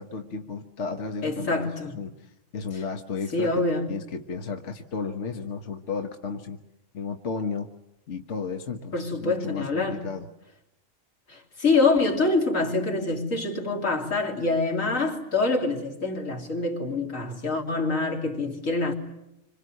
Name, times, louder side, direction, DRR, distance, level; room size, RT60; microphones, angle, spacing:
voice 1, 0.0-6.6 6.9-7.7 8.1-10.3, left 5 dB, 65° left, 1.6 m, -34 dB
voice 2, 1.2-2.0 3.3-3.9 8.9-10.1 11.3-18.9, left 3 dB, 85° left, 3.6 m, -25 dB
27.0 x 26.0 x 8.0 m
omnidirectional pair, 1.3 m